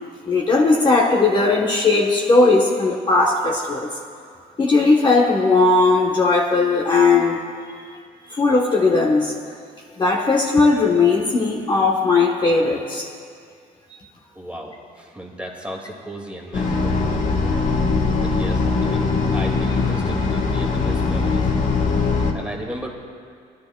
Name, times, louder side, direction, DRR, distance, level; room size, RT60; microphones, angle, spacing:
voice 1, 0.3-3.9 4.6-7.4 8.3-9.3 10.0-13.1, left 3 dB, 25° left, -1 dB, 1.0 m, -17 dB
voice 2, 14.3-17.0 17.4-17.5 18.2-21.5 22.2-22.9, equal, 5° right, 0 dB, 2.0 m, -35 dB
sound 1, 16.5-22.3, left 4 dB, 50° left, 1.3 m, -21 dB
22.5 x 11.0 x 2.2 m, 2.2 s
cardioid pair, 110°, 17 cm